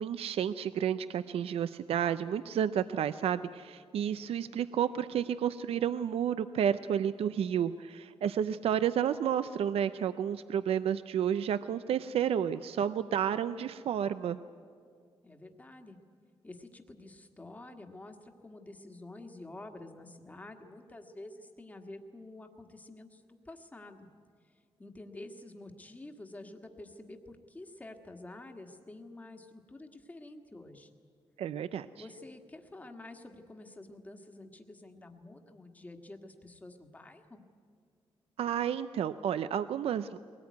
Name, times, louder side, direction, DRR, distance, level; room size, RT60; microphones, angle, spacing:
voice 1, 0.0-14.4 31.4-31.9 38.4-40.2, right 9 dB, 85° right, 13 dB, 0.5 m, -31 dB
voice 2, 15.2-16.0 16.4-24.1 24.8-30.9 32.0-37.4, left 2 dB, 15° left, 5 dB, 1.5 m, -49 dB
22.0 x 18.5 x 9.4 m, 2.3 s
wide cardioid pair, 145°, 10 cm